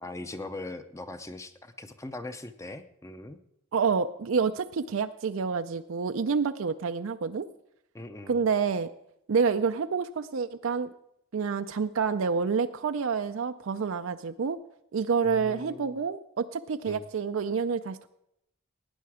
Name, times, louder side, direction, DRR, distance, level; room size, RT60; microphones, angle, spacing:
voice 1, 0.0-3.4 7.9-8.4 15.2-16.0 16.9-17.0, left 2 dB, 15° left, 9 dB, 0.6 m, -40 dB
voice 2, 3.7-7.5 8.3-8.9 9.3-10.9 11.3-14.6 14.9-18.1, right 5 dB, 70° right, 9 dB, 0.4 m, -28 dB
17.5 x 9.5 x 4.9 m, 0.80 s
head